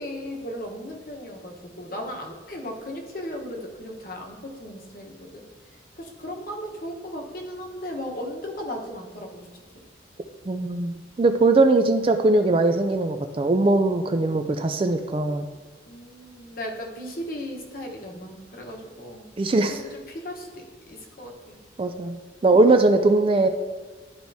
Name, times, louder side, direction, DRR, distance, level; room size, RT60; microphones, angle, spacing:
voice 1, 0.0-5.4 6.0-9.5 15.9-19.3 19.7-21.6, equal, 50° left, 1 dB, 1.1 m, -36 dB
voice 2, 10.5-15.5 19.4-19.8 21.8-22.2 22.4-23.5, right 2 dB, 30° right, 7 dB, 0.3 m, -20 dB
11.0 x 4.5 x 2.7 m, 1.5 s
head